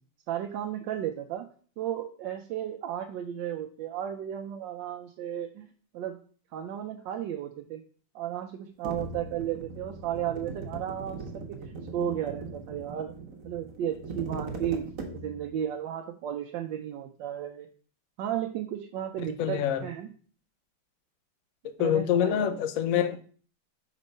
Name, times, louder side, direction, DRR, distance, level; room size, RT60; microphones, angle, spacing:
voice 1, 0.3-1.5 1.8-5.7 5.9-6.2 6.5-7.8 8.1-13.1 13.4-14.8 15.1-17.7 18.2-20.1 21.8-22.6, right 10 dB, 75° right, 1.2 m, -34 dB
sound 1, 8.8-15.6, right 3 dB, 50° right, 1.2 m, -40 dB
voice 2, 19.4-19.9 21.8-23.2, left 10 dB, 85° left, 0.7 m, -26 dB
5.3 x 4.1 x 5.3 m
omnidirectional pair, 2.2 m